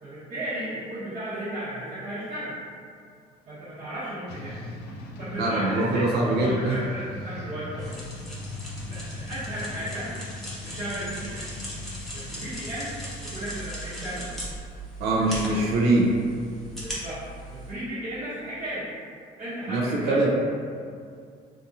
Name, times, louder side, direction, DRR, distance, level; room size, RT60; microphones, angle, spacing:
voice 1, 0.0-2.6 3.5-4.7 5.2-7.9 8.8-10.1 10.6-11.5 12.1-12.9 13.2-14.3 15.1-15.7 16.8-17.2 17.5-18.9 19.4-20.3, right 1 dB, 50° right, -14 dB, 0.9 m, -35 dB
sound 1, 4.3-13.5, left 2 dB, 80° left, 0.4 m, -39 dB
voice 2, 5.4-6.8 15.0-16.1 19.7-20.3, right 2 dB, 75° right, -4 dB, 0.5 m, -23 dB
sound 2, 7.8-17.7, right 1 dB, ahead, 0.7 m, -39 dB
2.7 x 2.5 x 2.6 m, 2.2 s
cardioid pair, 110°, 17 cm